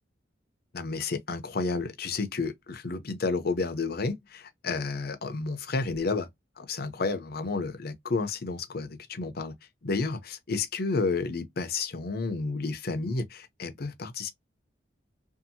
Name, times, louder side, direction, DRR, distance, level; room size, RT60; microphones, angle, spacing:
voice 1, 0.7-6.3 6.6-9.5 9.8-14.3, left 3 dB, 55° left, 0.7 m, -31 dB
2.7 x 2.5 x 2.6 m
head